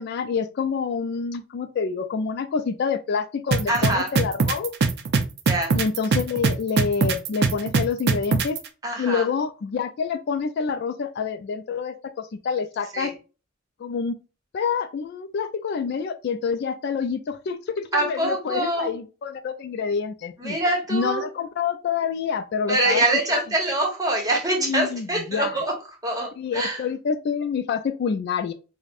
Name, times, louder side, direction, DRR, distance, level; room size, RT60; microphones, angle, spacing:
voice 1, 0.0-4.7 5.7-8.6 9.0-13.1 13.8-14.1 14.5-20.6 20.9-23.0 23.3-23.4 24.6-25.6 26.4-28.5, left 6 dB, 55° left, 0.3 m, -27 dB
sound 1, 3.5-8.6, right 4 dB, 55° right, 0.4 m, -20 dB
voice 2, 3.7-4.1 5.5-5.7 8.8-9.2 12.9-13.1 17.9-18.9 20.4-21.2 22.7-25.7 26.0-26.8, right 2 dB, 20° right, 1.0 m, -24 dB
4.9 x 2.1 x 2.4 m
head